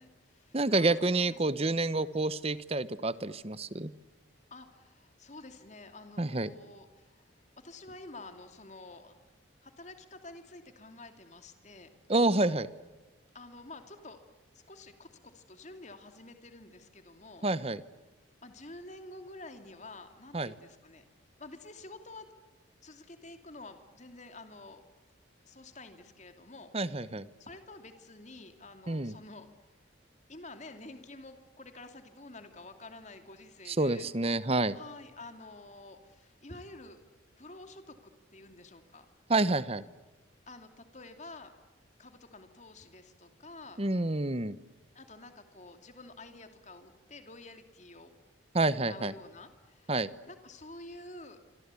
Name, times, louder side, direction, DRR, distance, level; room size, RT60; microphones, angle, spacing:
voice 1, 0.0-2.2 4.5-7.2 7.6-9.1 9.6-11.9 13.3-14.2 14.5-17.5 18.4-21.0 21.4-22.3 22.8-24.8 25.4-26.7 27.4-29.5 30.3-34.1 34.7-37.0 37.4-39.1 40.5-41.5 42.0-43.8 44.9-48.1 48.7-50.0 50.2-51.4, left 2 dB, 35° left, 7 dB, 2.7 m, -49 dB
voice 2, 0.5-3.9 6.2-6.5 12.1-12.7 17.4-17.8 20.3-20.5 26.7-27.3 28.9-29.1 33.7-34.8 39.3-39.8 43.8-44.6 48.5-49.1 49.9-50.1, right 2 dB, 30° right, 15 dB, 1.0 m, -28 dB
27.0 x 26.0 x 8.4 m, 1.2 s
head